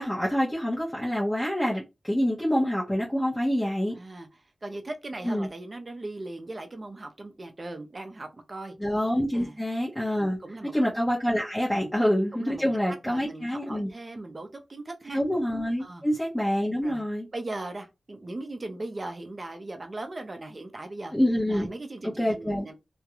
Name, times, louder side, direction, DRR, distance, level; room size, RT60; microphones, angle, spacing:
voice 1, 0.0-4.0 5.2-5.5 8.8-10.4 10.7-13.9 15.1-17.3 21.1-21.7 22.2-22.7, equal, 10° left, 0.8 m, -26 dB
voice 2, 3.9-4.3 4.6-8.7 9.3-9.6 10.4-10.7 11.7-11.9 12.3-12.6 13.0-15.2 15.8-16.0 16.8-17.0 17.3-21.1 21.5-22.7, right 2 dB, 40° right, 0.6 m, -38 dB
2.4 x 2.2 x 2.9 m
wide cardioid pair, 85°, 0 cm